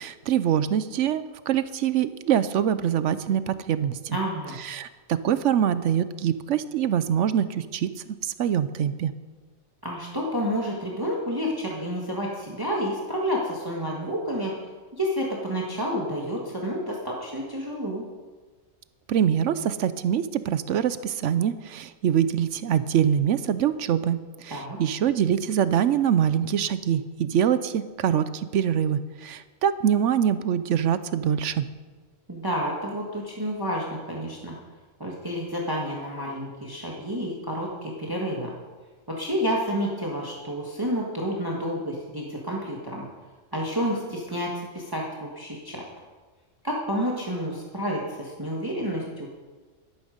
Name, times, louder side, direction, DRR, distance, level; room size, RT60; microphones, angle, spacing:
voice 1, 0.0-4.0 4.6-9.1 19.1-31.7, right 9 dB, 70° right, 14 dB, 0.9 m, -24 dB
voice 2, 4.1-4.6 9.8-14.5 14.9-18.0 24.5-24.8 32.3-34.5 35.0-38.5 39.1-43.0 43.5-45.8 46.6-49.3, equal, 15° right, -2 dB, 1.6 m, -29 dB
12.5 x 12.0 x 5.2 m, 1.4 s
omnidirectional pair, 1.4 m